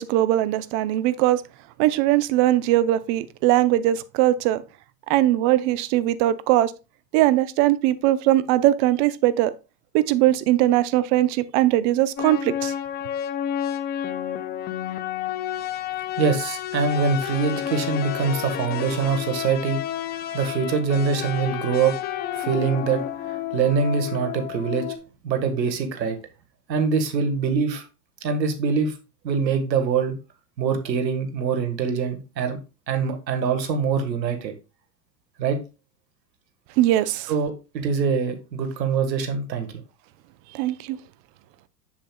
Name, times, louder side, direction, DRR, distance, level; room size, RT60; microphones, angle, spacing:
voice 1, 0.0-1.4 1.8-4.6 5.1-6.7 7.1-9.5 9.9-12.7 36.8-37.3 40.5-41.0, right 14 dB, 45° right, 0.7 m, -20 dB
sound 1, 12.2-25.0, left 11 dB, 20° left, 0.4 m, -30 dB
voice 2, 16.2-19.9 20.3-21.9 22.4-24.9 25.2-26.2 26.7-27.8 28.2-28.9 29.2-30.1 30.6-32.6 32.9-34.5 35.4-35.6 37.3-39.7, right 5 dB, 80° right, 1.7 m, -24 dB
7.6 x 7.1 x 2.3 m
hypercardioid pair, 105°, 50 cm